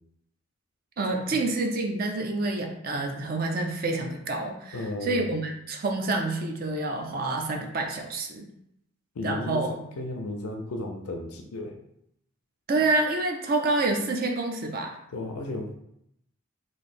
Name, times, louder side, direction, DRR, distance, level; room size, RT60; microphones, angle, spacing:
voice 1, 1.0-8.5 9.2-9.8 12.7-15.0, right 2 dB, 40° right, 3 dB, 0.4 m, -28 dB
voice 2, 4.7-5.3 9.1-11.7 15.1-15.7, left 2 dB, 90° left, 2 dB, 0.5 m, -34 dB
3.0 x 2.6 x 4.2 m, 0.79 s
head